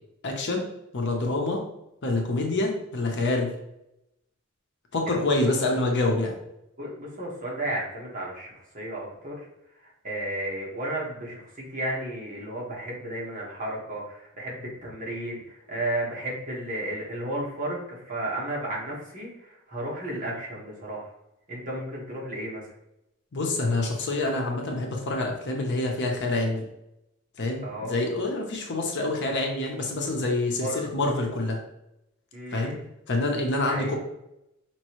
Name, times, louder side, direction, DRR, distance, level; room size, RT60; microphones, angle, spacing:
voice 1, 0.2-0.6 0.9-1.6 2.0-3.5 4.9-6.3 23.3-26.6 27.4-31.6 32.5-32.7 33.1-34.0, left 2 dB, 60° left, 1 dB, 0.9 m, -26 dB
voice 2, 6.8-9.5 9.8-21.1 21.5-22.6 27.6-28.0 30.6-30.9 32.3-32.8 33.7-34.0, right 1 dB, 40° right, -4 dB, 1.5 m, -33 dB
5.2 x 3.0 x 3.0 m, 0.87 s
head